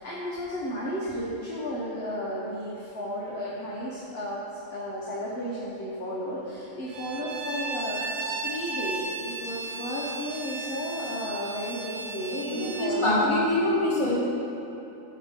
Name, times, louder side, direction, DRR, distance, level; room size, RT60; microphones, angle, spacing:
voice 1, 0.0-13.4, equal, 50° left, -6 dB, 1.0 m, -33 dB
Bowed string instrument, 6.9-13.0, right 3 dB, 65° right, 0.5 m, -35 dB
voice 2, 12.4-14.1, left 1 dB, 20° left, -8 dB, 1.7 m, -24 dB
6.5 x 4.8 x 5.1 m, 3.0 s
omnidirectional pair, 1.5 m